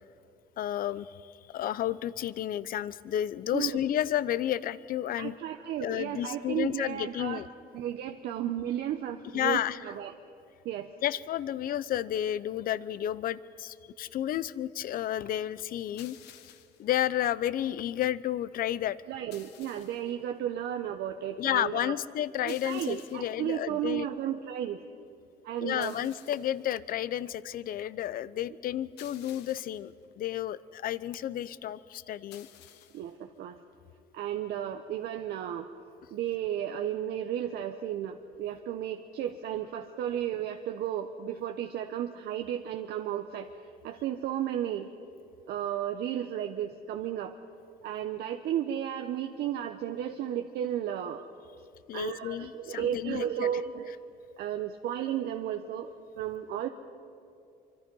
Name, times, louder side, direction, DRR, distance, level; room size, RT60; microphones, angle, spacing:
voice 1, 0.6-5.4 5.8-7.5 9.3-9.8 11.0-16.2 16.8-19.0 21.4-24.1 25.6-32.5 51.9-53.5 53.9-54.0, left 11 dB, 60° left, 17 dB, 0.7 m, -31 dB
voice 2, 5.2-7.4 7.7-10.1 10.6-10.9 19.1-21.9 22.4-24.8 25.4-26.0 32.9-33.6 34.1-35.7 36.1-43.5 43.8-44.9 45.5-47.3 47.8-51.2 51.9-53.9 54.4-56.7, right 10 dB, 75° right, 5 dB, 1.0 m, -33 dB
sound 1, 16.0-16.9 19.3-20.1 22.5-23.4 25.8-26.6 29.0-29.9 32.3-33.1, left 11 dB, 90° left, 1.3 m, -53 dB
25.0 x 25.0 x 5.5 m, 2.6 s
cardioid pair, 110°, 17 cm